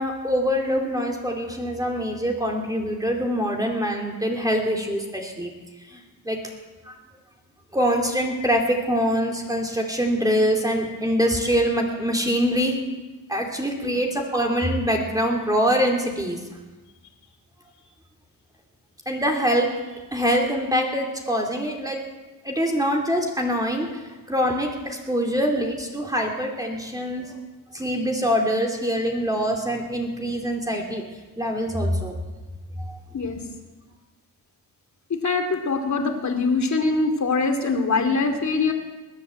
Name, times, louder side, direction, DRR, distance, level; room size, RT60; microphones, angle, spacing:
voice 1, 0.0-5.5 5.9-6.0 6.2-6.4 6.9-7.0 7.7-12.8 13.3-16.4 19.1-22.0 22.4-23.9 24.3-27.3 27.7-31.1 31.4-32.1 32.8-33.0, equal, 10° right, 0 dB, 2.8 m, -24 dB
voice 2, 35.1-38.7, left 3 dB, 50° left, 4 dB, 2.7 m, -23 dB
20.5 x 8.1 x 7.7 m, 1.2 s
cardioid pair, 65°, 37 cm